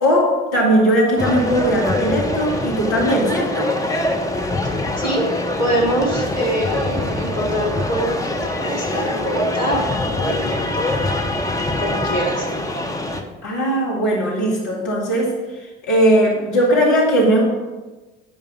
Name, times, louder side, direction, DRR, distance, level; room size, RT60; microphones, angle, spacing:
voice 1, 0.0-3.7 13.4-17.4, equal, 60° left, -3 dB, 2.0 m, -18 dB
sound 1, 1.2-13.2, left 1 dB, 10° left, 1.1 m, -24 dB
voice 2, 5.0-5.3 5.6-9.9 10.1-10.8 11.8-12.5, right 1 dB, 75° left, -3 dB, 2.3 m, -24 dB
9.5 x 5.3 x 5.2 m, 1.2 s
figure-of-eight pair, 55°, 34 cm